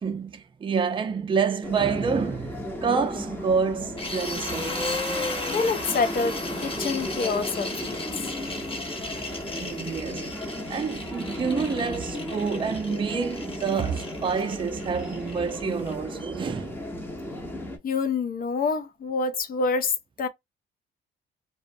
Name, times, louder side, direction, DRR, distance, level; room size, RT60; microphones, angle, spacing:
voice 1, 0.0-4.8 8.5-8.6 9.1-9.3 9.6-16.8, right 5 dB, 25° right, 0.4 m, -28 dB
sound 1, 1.6-17.8, left 1 dB, 10° left, 0.7 m, -35 dB
sound 2, 4.0-15.9, left 2 dB, 25° left, 1.0 m, -35 dB
voice 2, 5.5-8.0 17.8-20.3, left 4 dB, 45° left, 0.5 m, -27 dB
2.5 x 2.1 x 2.5 m
cardioid pair, 90°, 20 cm